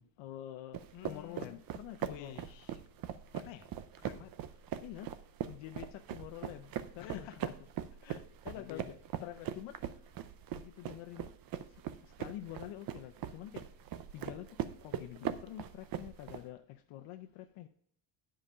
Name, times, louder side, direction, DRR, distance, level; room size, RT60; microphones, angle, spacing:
voice 1, 0.0-2.4 4.8-5.1 5.4-7.5 8.4-10.3 10.5-11.3 11.7-13.7 14.1-14.5 14.8-17.7, left 13 dB, 80° left, 0.7 m, -47 dB
sound 1, 0.7-16.4, right 10 dB, 45° right, 0.6 m, -41 dB
voice 2, 0.9-1.6 2.0-2.8 3.3-3.7 4.0-4.3 7.0-7.5 8.0-8.2 8.5-9.0, left 11 dB, 65° left, 1.0 m, -49 dB
9.9 x 5.2 x 5.5 m
cardioid pair, 170°, 48 cm